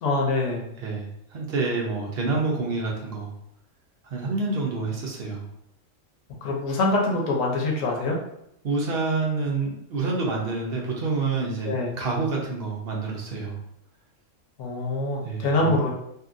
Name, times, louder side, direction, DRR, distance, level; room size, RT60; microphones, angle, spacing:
voice 1, 0.0-0.6 6.4-8.2 11.6-11.9 14.6-15.9, left 2 dB, 90° left, -2 dB, 1.1 m, -24 dB
voice 2, 0.8-3.3 4.0-5.5 8.6-13.6 15.2-15.7, right 3 dB, 55° right, -2 dB, 0.9 m, -28 dB
2.8 x 2.6 x 2.5 m, 0.77 s
omnidirectional pair, 1.3 m